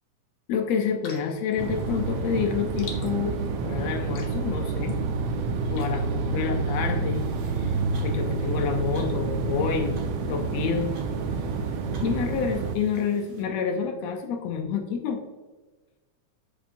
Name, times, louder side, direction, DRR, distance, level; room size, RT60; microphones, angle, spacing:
voice 1, 0.5-5.0 5.7-7.3 7.6-7.8 8.0-10.0 10.3-11.0 12.0-15.2, left 6 dB, 75° left, 5 dB, 1.8 m, -28 dB
sound 1, 1.0-7.3, left 5 dB, 60° left, 1.4 m, -49 dB
sound 2, 1.6-12.8, right 4 dB, 75° right, 1.5 m, -28 dB
sound 3, 7.1-13.4, right 2 dB, 45° right, 1.0 m, -48 dB
7.6 x 6.4 x 2.6 m, 1.3 s
omnidirectional pair, 3.4 m